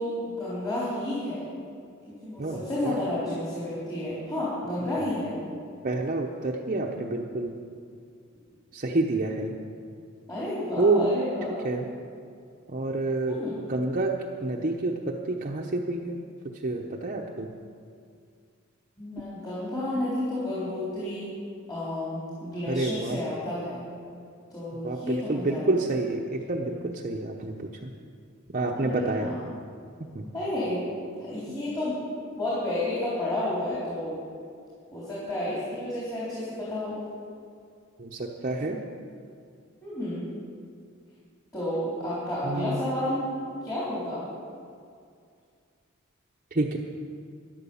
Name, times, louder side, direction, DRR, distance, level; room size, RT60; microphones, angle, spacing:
voice 1, 0.0-1.5 2.1-5.3 10.3-11.7 13.2-13.6 19.0-21.3 21.7-23.8 24.5-25.7 28.8-29.4 30.3-30.8 31.2-32.0 32.4-34.2 34.9-37.0 39.8-40.3 41.5-43.3 43.6-44.2, left 1 dB, 20° left, -10 dB, 3.9 m, -31 dB
voice 2, 2.4-3.0 5.8-7.5 8.7-9.5 10.8-11.1 11.6-11.9 12.7-13.4 13.7-14.1 14.4-16.2 16.6-17.5 22.7-23.2 24.8-27.9 28.5-29.3 30.1-30.3 38.0-38.8 42.4-42.8 46.5-46.8, right 2 dB, 40° right, 0 dB, 0.8 m, -28 dB
12.5 x 11.0 x 7.1 m, 2.3 s
head